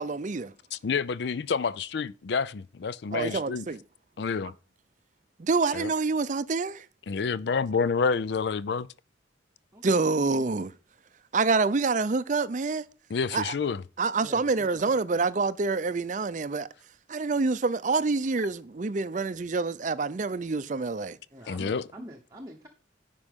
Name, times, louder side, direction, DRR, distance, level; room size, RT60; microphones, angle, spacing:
voice 1, 0.0-0.5 3.1-3.8 5.4-6.8 9.8-10.7 11.3-12.8 13.3-13.5 14.0-16.7 17.1-21.2, right 4 dB, 40° right, 0.5 m, -27 dB
voice 2, 0.7-3.7 4.2-4.5 5.7-5.9 7.1-8.9 13.1-13.8 21.5-21.9, left 5 dB, 60° left, 0.4 m, -28 dB
voice 3, 3.1-3.5 9.7-10.0 14.2-14.5 14.8-15.0 21.3-22.7, equal, 20° right, 0.9 m, -44 dB
9.8 x 5.2 x 3.6 m
head